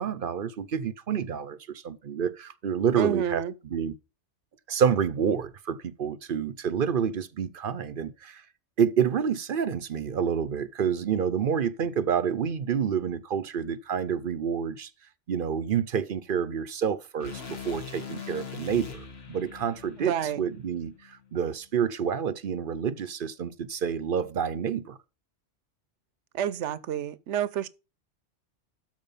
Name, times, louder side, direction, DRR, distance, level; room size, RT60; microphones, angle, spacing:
voice 1, 0.0-3.9 4.7-8.4 8.8-14.9 15.3-25.0, right 7 dB, 55° right, 0.8 m, -28 dB
voice 2, 3.0-3.5 20.0-20.4 26.3-27.7, right 9 dB, 75° right, 1.0 m, -29 dB
sound 1, 17.2-21.4, left 6 dB, 60° left, 1.8 m, -42 dB
12.5 x 4.7 x 5.5 m
omnidirectional pair, 1.2 m